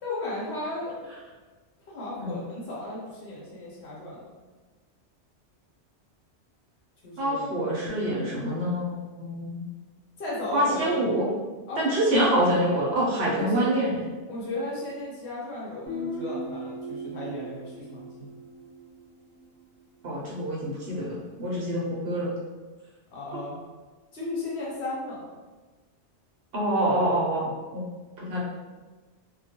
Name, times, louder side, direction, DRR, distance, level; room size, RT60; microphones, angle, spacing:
voice 1, 0.0-1.1 1.9-4.2 7.0-7.5 10.2-11.0 11.7-11.8 13.3-13.7 14.3-18.3 23.1-23.6 24.1-25.2, left 2 dB, 70° left, -5 dB, 1.0 m, -35 dB
voice 2, 7.2-9.6 10.5-11.3 11.8-14.1 20.0-22.3 26.5-27.8 28.2-28.4, right 1 dB, 60° right, -5 dB, 0.8 m, -26 dB
Guitar, 15.8-19.5, equal, 20° right, 0.8 m, -38 dB
2.2 x 2.2 x 2.8 m, 1.3 s
omnidirectional pair, 1.2 m